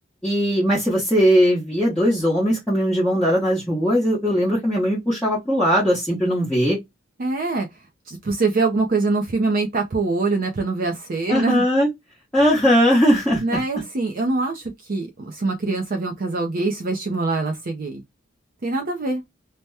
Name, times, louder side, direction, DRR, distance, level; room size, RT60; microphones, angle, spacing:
voice 1, 0.2-6.8 11.3-11.9 12.3-13.6, equal, 5° left, 0.9 m, -19 dB
voice 2, 7.2-7.7 8.1-11.6 13.4-18.0 18.6-19.2, right 3 dB, 45° right, 0.5 m, -24 dB
2.8 x 2.1 x 3.3 m
head